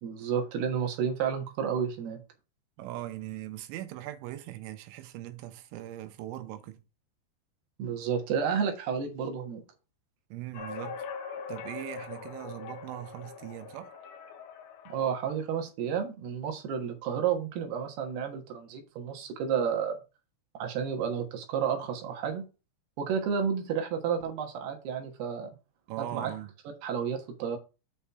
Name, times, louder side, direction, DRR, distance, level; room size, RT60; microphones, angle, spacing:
voice 1, 0.0-2.2 7.8-9.6 14.9-20.0 20.5-22.4 23.0-25.5 26.0-26.3 26.8-27.6, right 7 dB, 65° right, 3.1 m, -31 dB
voice 2, 2.8-6.8 10.3-11.1 11.5-13.9 25.9-26.5, right 14 dB, 85° right, 3.5 m, -40 dB
sound 1, 10.5-15.3, left 6 dB, 70° left, 2.6 m, -42 dB
7.2 x 5.4 x 4.2 m
omnidirectional pair, 5.5 m